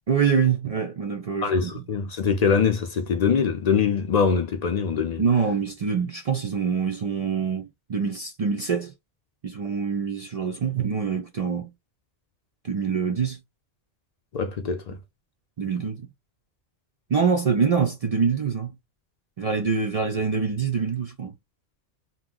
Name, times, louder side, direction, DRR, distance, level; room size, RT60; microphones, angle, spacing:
voice 1, 0.1-1.7 5.2-8.9 9.4-11.7 12.6-13.4 15.6-16.1 17.1-18.7 19.4-21.3, right 6 dB, 65° right, 0.3 m, -25 dB
voice 2, 1.4-5.2 14.3-14.9, left 6 dB, 60° left, 0.4 m, -23 dB
2.9 x 2.0 x 3.5 m
omnidirectional pair, 1.2 m